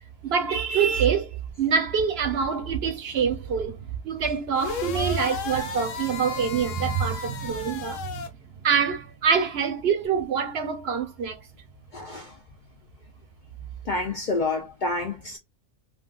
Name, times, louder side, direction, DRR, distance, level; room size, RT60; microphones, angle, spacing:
voice 1, 0.2-1.3 1.6-3.8 4.0-8.2 8.6-11.4, right 6 dB, 60° right, 0.8 m, -25 dB
sound 1, 4.5-8.3, left 6 dB, 90° left, 1.1 m, -34 dB
voice 2, 11.9-12.3 13.9-15.4, left 3 dB, 55° left, 0.5 m, -28 dB
3.2 x 2.3 x 2.2 m
omnidirectional pair, 1.3 m